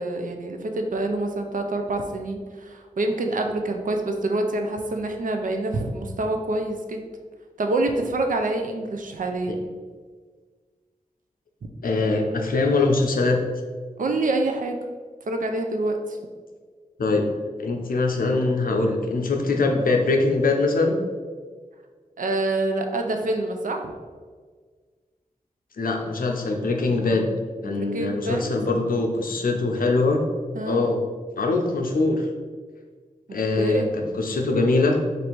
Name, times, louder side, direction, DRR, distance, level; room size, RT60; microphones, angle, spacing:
voice 1, 0.0-7.0 7.6-9.6 14.0-14.8 15.3-16.0 22.2-23.9 27.6-28.4 30.5-30.8 33.6-33.8, right 2 dB, 65° right, 4 dB, 0.5 m, -26 dB
voice 2, 11.8-13.4 17.0-17.2 17.6-21.0 25.8-27.3 27.6-30.2 30.7-31.0 31.4-32.3 33.3-35.0, left 3 dB, 75° left, 2 dB, 0.6 m, -22 dB
3.2 x 2.6 x 4.4 m, 1.5 s
cardioid pair, 45°, 15 cm